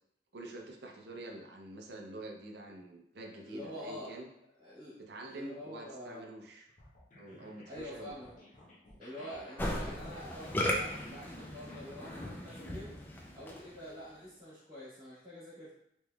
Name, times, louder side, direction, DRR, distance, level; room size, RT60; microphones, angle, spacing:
voice 1, 0.3-4.3 5.0-6.7 7.2-8.1, right 2 dB, 60° right, 2 dB, 0.5 m, -46 dB
voice 2, 3.4-4.2 4.6-6.3 7.7-8.3 9.0-13.0 13.3-15.7, equal, 30° right, -10 dB, 1.3 m, -46 dB
sound 1, 6.7-12.7, left 1 dB, 45° left, 0.7 m, -55 dB
Musical instrument, 9.6-13.8, left 1 dB, 10° left, 0.4 m, -37 dB
3.6 x 3.0 x 2.2 m, 0.77 s
head